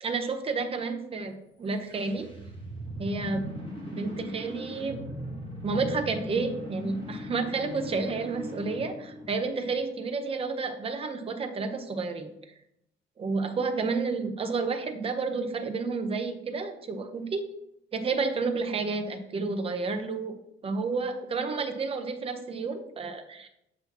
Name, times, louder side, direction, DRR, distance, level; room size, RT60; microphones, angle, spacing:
voice 1, 0.0-2.3 3.0-3.5 3.9-5.0 5.6-12.3 13.2-17.4 17.9-20.3 20.6-23.5, right 4 dB, 25° right, 7 dB, 0.7 m, -30 dB
sound 1, 1.6-9.8, left 1 dB, 25° left, 1.7 m, -39 dB
7.1 x 2.8 x 5.8 m, 0.81 s
cardioid pair, 150°, 21 cm